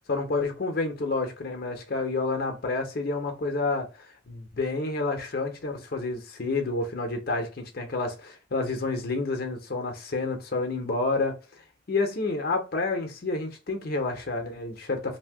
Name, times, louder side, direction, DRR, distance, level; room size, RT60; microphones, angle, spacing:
voice 1, 0.1-3.9 4.3-11.4 11.9-15.2, left 3 dB, 55° left, 0.7 m, -29 dB
2.7 x 2.2 x 3.3 m
head